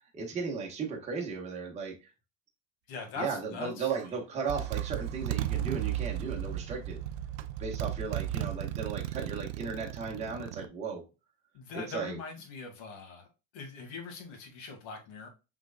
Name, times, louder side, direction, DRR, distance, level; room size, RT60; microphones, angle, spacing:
voice 1, 0.1-2.1 3.2-7.0 7.6-11.0 11.7-12.2, right 5 dB, 15° right, 0 dB, 1.2 m, -36 dB
voice 2, 2.9-3.8 11.5-15.3, left 4 dB, 50° left, 3 dB, 2.2 m, -41 dB
Motorcycle, 3.9-4.1 4.5-10.7, right 12 dB, 70° right, 0.6 m, -35 dB
5.9 x 3.9 x 2.3 m, 0.28 s
supercardioid pair, 160°, 39 cm